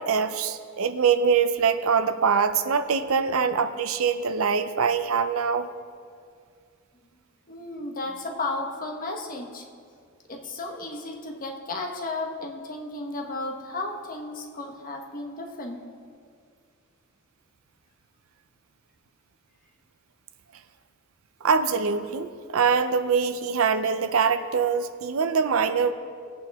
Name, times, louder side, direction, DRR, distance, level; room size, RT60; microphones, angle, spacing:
voice 1, 0.0-5.7 21.4-25.9, right 6 dB, 75° right, 10 dB, 0.6 m, -23 dB
voice 2, 7.5-9.6 10.3-15.9, left 2 dB, 40° left, 2 dB, 1.3 m, -34 dB
19.5 x 8.5 x 3.6 m, 2.2 s
head